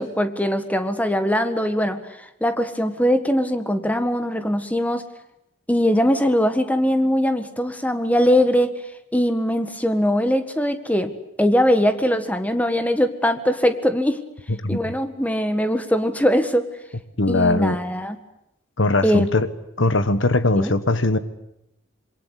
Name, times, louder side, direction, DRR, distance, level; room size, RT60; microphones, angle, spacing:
voice 1, 0.0-5.0 5.7-8.7 9.1-11.1 11.4-14.2 14.7-16.7 17.3-18.2 19.0-19.3 20.6-20.7, equal, 10° left, 9 dB, 1.7 m, -21 dB
voice 2, 17.2-17.8 18.8-19.5 19.8-21.2, left 2 dB, 65° left, 13 dB, 1.5 m, -20 dB
27.0 x 22.5 x 8.4 m, 0.83 s
head